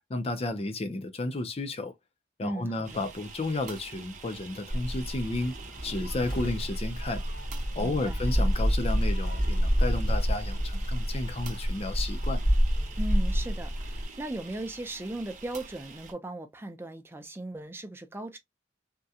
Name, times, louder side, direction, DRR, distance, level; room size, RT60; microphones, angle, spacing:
voice 1, 0.1-1.9 2.4-5.6 5.8-7.2 7.8-12.4, left 2 dB, 35° left, 0.5 m, -32 dB
voice 2, 2.4-3.0 7.8-8.2 13.0-18.4, right 1 dB, 15° right, 0.5 m, -37 dB
sound 1, 2.8-16.1, right 4 dB, 45° right, 0.8 m, -46 dB
Gull seagull, 4.7-14.0, equal, 80° left, 1.3 m, -28 dB
3.6 x 2.2 x 2.7 m
head